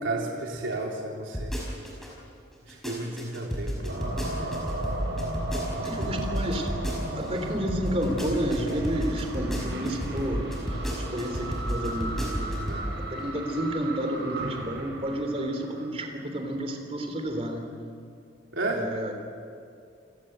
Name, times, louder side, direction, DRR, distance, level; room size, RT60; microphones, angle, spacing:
voice 1, 0.0-1.6 2.7-4.6 12.6-12.9 18.5-18.8, right 2 dB, 80° right, -1 dB, 3.7 m, -33 dB
sound 1, 1.3-2.1 2.5-7.4 7.7-12.9 13.2-13.3, equal, ahead, 5.4 m, -32 dB
sound 2, 3.9-15.9, right 1 dB, 65° right, 5.5 m, -35 dB
voice 2, 5.8-6.7 7.1-10.5 11.1-12.3 13.1-17.7 18.7-19.1, equal, 30° right, 4 dB, 3.2 m, -30 dB
28.5 x 18.0 x 8.0 m, 2.4 s
head